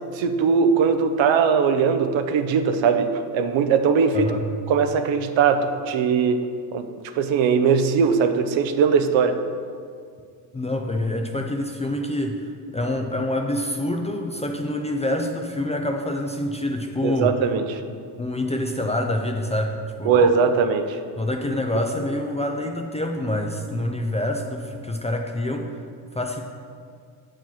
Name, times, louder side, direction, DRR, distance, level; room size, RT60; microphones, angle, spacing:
voice 1, 0.1-4.3 4.7-6.9 7.1-9.4 17.0-17.8 20.0-21.0, right 6 dB, 65° right, 8 dB, 0.7 m, -20 dB
voice 2, 4.1-4.5 10.5-17.4 18.2-20.2 21.2-25.7 26.1-26.4, left 1 dB, 15° left, 3 dB, 0.4 m, -26 dB
7.5 x 5.0 x 5.7 m, 2.1 s
cardioid pair, 105°, 49 cm